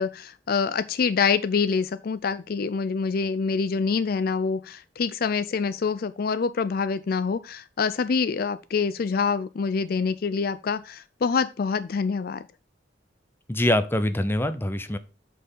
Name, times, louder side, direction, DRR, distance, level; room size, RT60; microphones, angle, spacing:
voice 1, 0.0-12.4, left 5 dB, 55° left, 0.4 m, -26 dB
voice 2, 13.5-15.0, left 1 dB, 15° left, 0.7 m, -24 dB
8.3 x 4.3 x 5.6 m
head